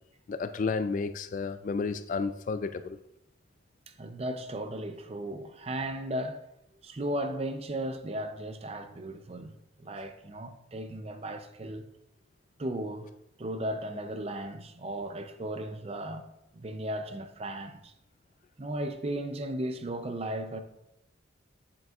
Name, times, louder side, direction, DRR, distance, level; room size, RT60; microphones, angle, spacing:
voice 1, 0.3-3.0, left 4 dB, 40° left, 0.3 m, -31 dB
voice 2, 4.0-6.4 6.8-11.9 12.6-13.1 13.4-16.3 16.5-17.9 18.6-20.6, right 1 dB, 30° right, 0.5 m, -36 dB
7.7 x 7.7 x 2.4 m
head